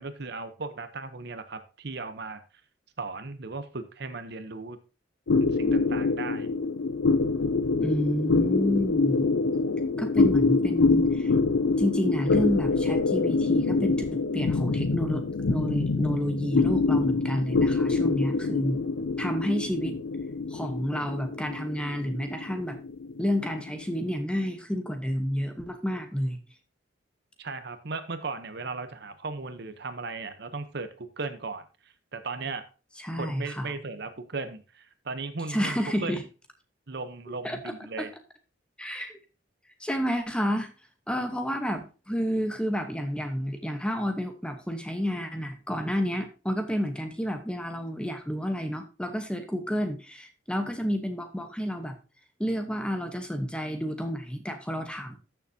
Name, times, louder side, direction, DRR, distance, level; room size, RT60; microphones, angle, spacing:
voice 1, 0.0-2.4 3.0-4.8 5.4-6.5 27.4-32.6 33.2-36.2 36.9-38.1, right 3 dB, 55° right, 10 dB, 0.8 m, -37 dB
sound 1, 5.3-24.0, left 3 dB, 75° left, 0.5 m, -25 dB
voice 2, 7.8-9.3 10.0-11.3 11.8-18.8 19.2-20.0 20.5-22.8 23.2-26.4 33.0-33.7 35.5-36.2 37.4-37.6 38.0-38.1 38.8-39.1 39.8-40.7 41.1-52.0 52.4-55.2, equal, 5° left, 6 dB, 1.0 m, -30 dB
13.0 x 6.9 x 2.7 m, 0.33 s
head